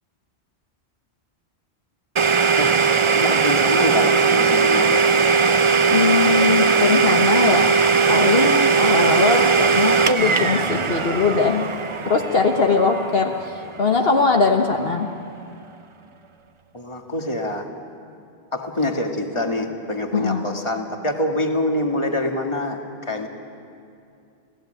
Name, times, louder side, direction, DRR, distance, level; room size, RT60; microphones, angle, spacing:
Domestic sounds home sounds, 2.2-13.8, right 5 dB, 35° right, 0.7 m, -19 dB
voice 1, 3.1-5.1 16.7-17.7 18.5-23.3, left 1 dB, 30° left, 3 dB, 1.9 m, -25 dB
voice 2, 5.9-7.7 8.1-11.7 12.0-13.3 13.8-15.1 20.1-20.5, left 4 dB, 65° left, 3 dB, 1.5 m, -20 dB
28.5 x 16.5 x 9.1 m, 2.5 s
omnidirectional pair, 1.1 m